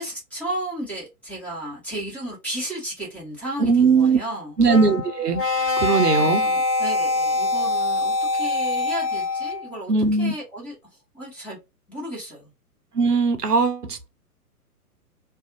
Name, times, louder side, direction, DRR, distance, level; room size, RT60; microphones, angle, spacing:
voice 1, 0.0-4.5 6.1-10.7 11.1-11.6 11.9-12.5, right 1 dB, 5° left, 0.9 m, -34 dB
voice 2, 3.6-4.2 4.6-5.4 5.8-6.4 9.9-10.3 12.9-14.1, right 4 dB, 90° right, 0.6 m, -19 dB
sound 1, 4.6-9.7, left 2 dB, 40° left, 1.3 m, -24 dB
2.6 x 2.3 x 2.5 m
figure-of-eight pair, 115°, 46 cm